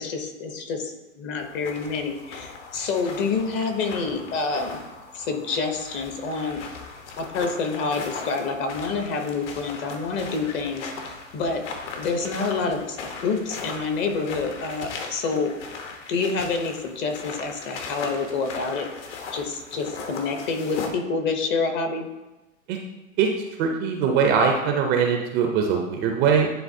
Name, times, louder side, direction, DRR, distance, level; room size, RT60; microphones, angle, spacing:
voice 1, 0.0-4.8 5.1-6.6 7.2-10.9 11.3-11.6 12.0-15.5 16.1-18.9 19.3-22.1, left 4 dB, 30° left, 5 dB, 0.7 m, -27 dB
sound 1, 1.4-20.9, left 4 dB, 55° left, 1.1 m, -38 dB
voice 2, 23.6-26.5, right 6 dB, 25° right, 3 dB, 0.5 m, -21 dB
10.0 x 3.8 x 2.7 m, 1.1 s
hypercardioid pair, 120°, 40 cm